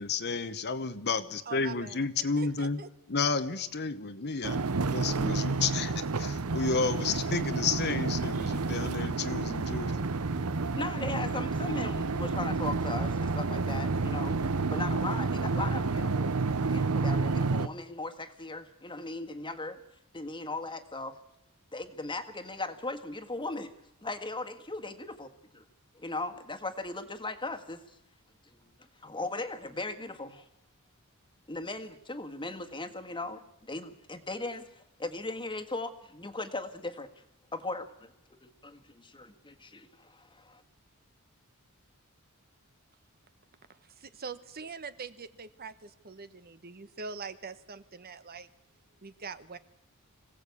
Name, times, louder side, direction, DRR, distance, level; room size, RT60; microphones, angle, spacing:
voice 1, 0.0-2.8 3.1-4.6 4.9-9.9, left 4 dB, 50° left, 11 dB, 1.1 m, -31 dB
voice 2, 1.5-2.1 2.4-2.9 43.7-48.5 49.0-49.6, right 5 dB, 45° right, 12 dB, 1.1 m, -43 dB
sound 1, 4.4-17.7, right 3 dB, 80° right, 0.8 m, -30 dB
voice 3, 10.8-14.4 14.7-19.8 20.1-21.2 21.7-23.7 24.0-25.6 26.0-27.8 28.5-28.6 29.0-30.5 31.5-37.1 37.5-38.1 38.4-40.6, left 2 dB, 20° left, 7 dB, 1.7 m, -38 dB
25.5 x 17.0 x 8.5 m, 0.83 s
head